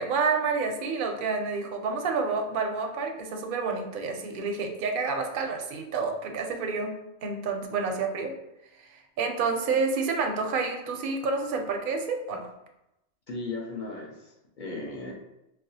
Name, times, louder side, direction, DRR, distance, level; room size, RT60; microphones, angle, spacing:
voice 1, 0.0-6.9 7.2-8.3 9.2-12.5, right 4 dB, 60° right, 4 dB, 0.7 m, -29 dB
voice 2, 13.3-15.1, left 3 dB, 50° left, -2 dB, 0.9 m, -36 dB
4.7 x 2.3 x 2.7 m, 0.89 s
omnidirectional pair, 1.2 m